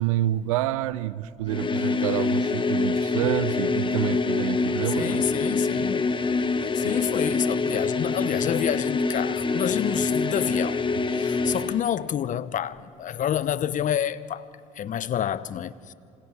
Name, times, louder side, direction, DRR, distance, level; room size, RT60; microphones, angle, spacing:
voice 1, 0.0-5.2 5.5-5.6 6.8-7.0, right 14 dB, 85° right, 0.5 m, -28 dB
sound 1, 1.5-11.8, left 4 dB, 30° left, 1.3 m, -25 dB
voice 2, 5.0-6.1 6.6-10.8 11.1-14.5 14.7-15.9, left 10 dB, 50° left, 0.8 m, -28 dB
27.0 x 25.5 x 4.8 m
hypercardioid pair, 65°, 17 cm